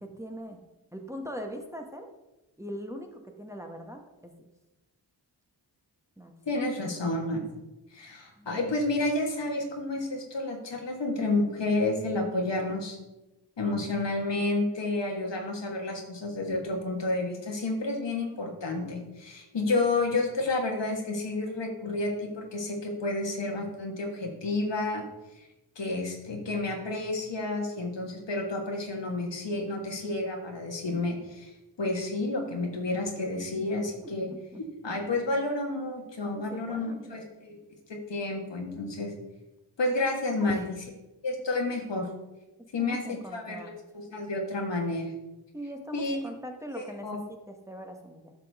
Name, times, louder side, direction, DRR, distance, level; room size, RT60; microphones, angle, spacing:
voice 1, 0.0-0.6 0.9-2.1 2.6-4.5 6.2-6.3 8.4-8.5 34.0-34.6 36.3-37.1 40.4-40.7 42.8-43.7 45.5-48.3, equal, 5° right, 3 dB, 1.1 m, -41 dB
voice 2, 6.4-7.4 7.9-13.0 13.6-25.1 25.4-25.5 25.7-31.5 31.8-34.3 34.8-37.6 37.9-39.1 39.8-40.8 41.2-42.1 42.7-43.0 43.3-45.1 45.9-46.2 46.7-47.2, left 2 dB, 75° left, 1 dB, 1.7 m, -30 dB
10.5 x 6.1 x 3.5 m, 1.0 s
wide cardioid pair, 55°, 44 cm